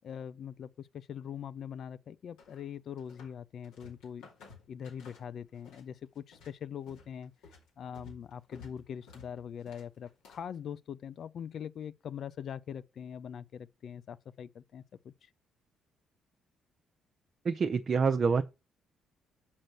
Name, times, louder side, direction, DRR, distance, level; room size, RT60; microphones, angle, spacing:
voice 1, 0.0-4.3 4.7-7.3 7.8-15.3, left 8 dB, 55° left, 0.5 m, -42 dB
sound 1, 2.4-3.4 3.6-5.9 6.2-10.6, left 4 dB, 70° left, 2.5 m, -55 dB
voice 2, 17.4-18.4, right 5 dB, 45° right, 0.6 m, -26 dB
6.4 x 5.6 x 6.2 m
hypercardioid pair, 45°, 0 cm